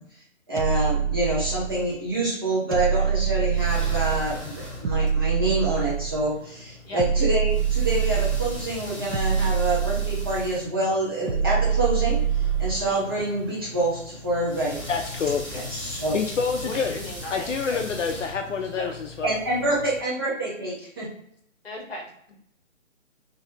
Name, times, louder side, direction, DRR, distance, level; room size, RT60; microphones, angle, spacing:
voice 1, 0.5-12.2 12.6-14.8 15.7-16.2 19.2-21.1, right 2 dB, 20° right, -8 dB, 0.8 m, -26 dB
sound 1, 0.6-1.9 2.7-4.3 4.8-6.3 7.0-8.6 9.1-10.5 11.3-12.9, right 8 dB, 90° right, 0.7 m, -25 dB
sound 2, 3.3-20.0, left 2 dB, 20° left, 0.9 m, -39 dB
voice 2, 14.9-15.5 16.1-17.0 17.3-19.3, left 5 dB, 65° left, 4 dB, 0.6 m, -27 dB
voice 3, 16.6-17.8 18.7-19.0 21.6-22.1, left 1 dB, 50° left, -1 dB, 1.5 m, -36 dB
3.9 x 2.8 x 2.8 m, 0.72 s
hypercardioid pair, 170°, 40 cm